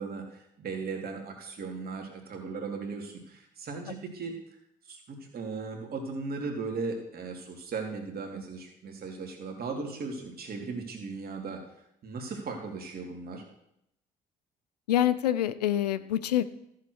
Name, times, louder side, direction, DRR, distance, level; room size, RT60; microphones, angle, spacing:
voice 1, 0.0-4.3 4.8-11.6 12.0-13.4, right 4 dB, 50° right, 2 dB, 2.8 m, -37 dB
voice 2, 14.9-16.4, left 12 dB, 90° left, 14 dB, 0.5 m, -26 dB
13.5 x 7.5 x 4.7 m, 0.79 s
hypercardioid pair, 50°, 20 cm